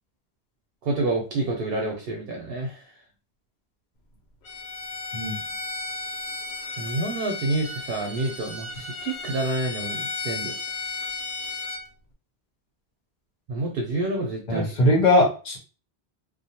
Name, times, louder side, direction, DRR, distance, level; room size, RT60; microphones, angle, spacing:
voice 1, 0.8-2.8 6.8-10.5 13.5-14.7, right 2 dB, 65° right, 1 dB, 0.8 m, -28 dB
Bowed string instrument, 4.4-11.8, left 3 dB, 80° left, 0.9 m, -34 dB
voice 2, 14.5-15.6, left 1 dB, 55° left, 0 dB, 1.0 m, -20 dB
2.4 x 2.2 x 2.8 m, 0.34 s
omnidirectional pair, 1.1 m